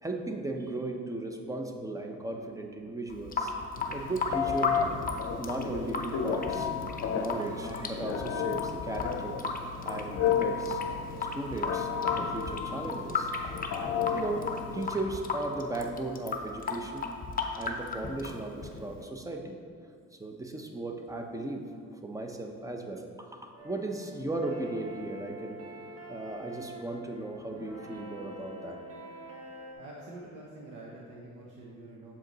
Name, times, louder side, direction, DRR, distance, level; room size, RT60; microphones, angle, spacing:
voice 1, 0.0-3.5 3.9-4.8 5.4-6.7 7.1-9.4 9.8-10.8 11.2-11.9 12.2-13.3 14.1-14.5 14.7-17.1 17.6-19.6 20.2-21.6 22.0-25.6 26.1-28.8, right 2 dB, 10° right, 4 dB, 0.7 m, -36 dB
Water tap faucet / Sink (filling or washing) / Drip, 3.1-19.0, left 4 dB, 30° left, 0.7 m, -35 dB
Telephone, 3.8-14.9, left 7 dB, 60° left, 0.7 m, -33 dB
sound 1, 23.6-29.7, right 1 dB, 55° right, 1.5 m, -46 dB
voice 2, 29.6-32.1, right 2 dB, 90° right, -3 dB, 0.9 m, -46 dB
7.3 x 5.0 x 4.0 m, 2.2 s
cardioid pair, 90°, 30 cm